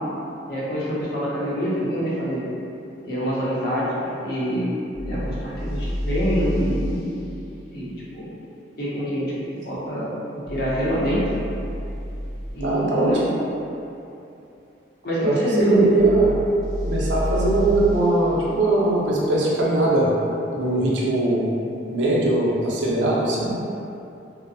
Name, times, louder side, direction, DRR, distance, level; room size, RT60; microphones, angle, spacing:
voice 1, 0.5-2.5 3.0-4.7 5.0-7.2 7.7-8.3 8.8-9.3 9.6-10.1 10.5-11.2 12.5-13.2 15.0-15.9, equal, 55° left, -8 dB, 0.6 m, -25 dB
sound 1, 4.9-7.0 10.4-12.6 16.0-18.0, equal, 20° left, 0.7 m, -29 dB
voice 2, 12.6-13.1 15.2-16.3 16.8-20.1 20.5-21.5 21.9-23.5, right 2 dB, 85° right, -5 dB, 0.5 m, -20 dB
2.5 x 2.0 x 2.6 m, 2.7 s
head